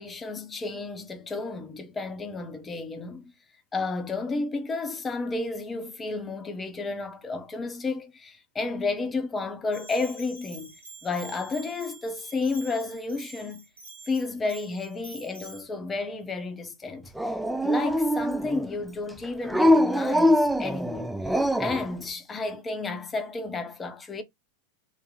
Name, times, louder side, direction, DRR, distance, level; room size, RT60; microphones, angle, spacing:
voice 1, 0.0-3.3 3.7-13.6 14.1-17.1 17.6-24.2, left 3 dB, 15° left, 0.8 m, -32 dB
Bell, 9.7-15.6, right 3 dB, 70° right, 1.9 m, -46 dB
Dog, 17.2-18.7 19.5-21.8, equal, 5° right, 0.3 m, -23 dB
3.2 x 2.8 x 3.6 m
figure-of-eight pair, 90°, 0 cm